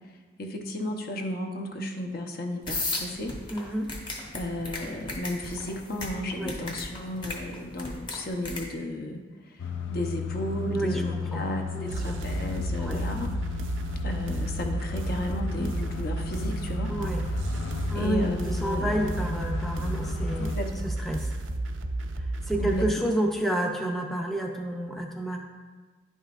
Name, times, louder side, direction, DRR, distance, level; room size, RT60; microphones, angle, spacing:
voice 1, 0.4-3.3 4.3-9.2 9.5-13.3 14.0-16.9 17.9-19.0 20.3-20.9 22.6-23.0, left 1 dB, 50° left, 4 dB, 0.7 m, -33 dB
sound 1, 2.7-8.7, left 2 dB, 25° left, 1.0 m, -35 dB
voice 2, 3.5-3.9 6.4-6.5 10.6-11.0 11.3-11.4 11.7-12.2 12.8-13.0 16.9-17.2 17.9-20.5 20.8-21.3 22.5-25.4, right 1 dB, ahead, 1 dB, 0.5 m, -30 dB
sound 2, 9.6-20.6, left 5 dB, 80° left, 0.4 m, -35 dB
sound 3, 11.9-22.9, right 2 dB, 85° right, 0.5 m, -32 dB
10.5 x 5.5 x 2.4 m, 1.3 s
head